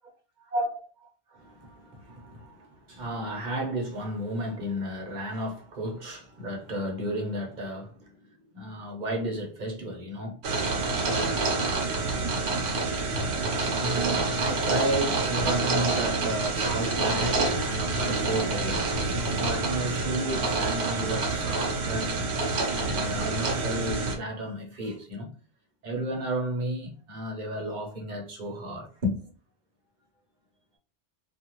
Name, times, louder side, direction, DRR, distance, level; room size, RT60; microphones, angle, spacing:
voice 1, 0.5-10.4 10.8-11.0 12.2-12.3 13.5-22.2 22.8-25.3 25.8-29.3, right 1 dB, 45° right, 0.9 m, -33 dB
sound 1, 10.4-24.2, right 3 dB, 80° right, 1.0 m, -27 dB
2.4 x 2.3 x 2.9 m
omnidirectional pair, 1.1 m